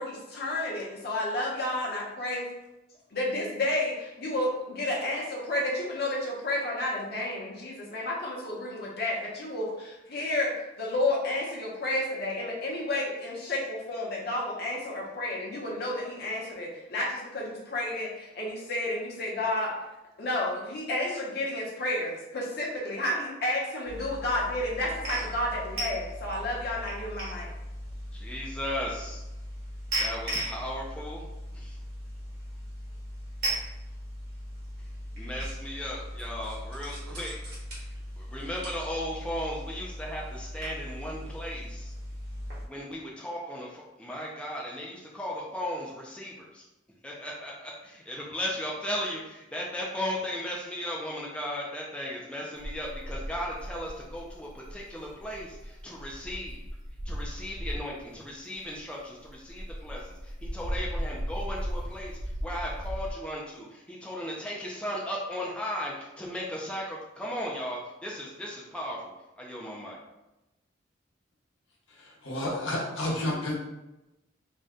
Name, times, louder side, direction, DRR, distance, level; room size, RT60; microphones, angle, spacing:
voice 1, 0.0-2.5 3.1-19.7 20.2-27.5, left 1 dB, 55° left, -3 dB, 0.8 m, -31 dB
sound 1, 23.9-42.7, equal, 50° right, 1.1 m, -38 dB
voice 2, 28.1-29.2 30.0-31.3 31.5-31.8 35.2-37.4 37.7-37.9 38.2-41.9 42.6-46.6 47.0-56.6 57.1-70.0, equal, 5° left, -3 dB, 0.4 m, -36 dB
sound 2, 52.6-58.1 58.5-63.1, equal, 70° right, 0.5 m, -37 dB
voice 3, 72.0-73.6, left 1 dB, 85° left, -3 dB, 0.8 m, -31 dB
2.6 x 2.1 x 3.5 m, 0.97 s
head